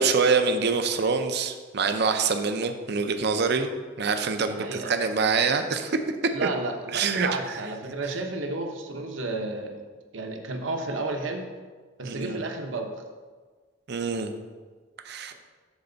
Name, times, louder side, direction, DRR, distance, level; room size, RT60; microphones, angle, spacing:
voice 1, 0.0-3.7 4.0-6.1 6.4-6.5 6.9-7.3 12.0-12.4 13.9-14.3 15.0-15.3, right 5 dB, 55° right, 7 dB, 0.6 m, -25 dB
voice 2, 4.5-4.9 6.3-9.8 10.1-11.5 12.0-12.9, right 2 dB, 70° right, 4 dB, 1.0 m, -32 dB
12.5 x 4.4 x 3.9 m, 1.4 s
head